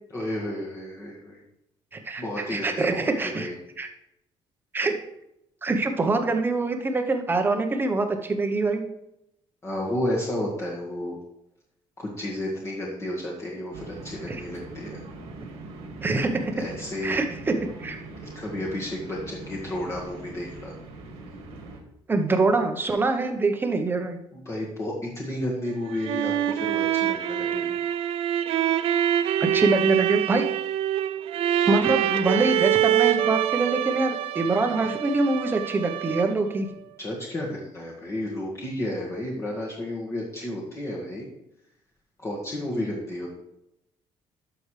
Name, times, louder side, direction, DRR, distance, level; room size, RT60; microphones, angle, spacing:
voice 1, 0.1-1.4 2.2-3.5 9.6-11.2 12.0-15.0 16.6-17.2 18.3-20.7 24.3-27.8 37.0-41.3 42.2-43.3, left 1 dB, 25° left, -4 dB, 1.8 m, -32 dB
voice 2, 1.9-2.2 2.5-3.5 3.8-3.9 4.7-4.9 5.6-8.9 14.3-14.4 16.0-16.5 17.0-17.5 17.8-18.0 22.1-24.2 29.4-30.5 31.7-36.7, right 3 dB, 20° right, 5 dB, 1.0 m, -24 dB
sound 1, 13.7-21.8, right 2 dB, 85° right, 2.0 m, -41 dB
sound 2, 25.7-36.5, right 11 dB, 70° right, 0.4 m, -25 dB
12.0 x 6.1 x 3.3 m, 0.83 s
cardioid pair, 145°, 10 cm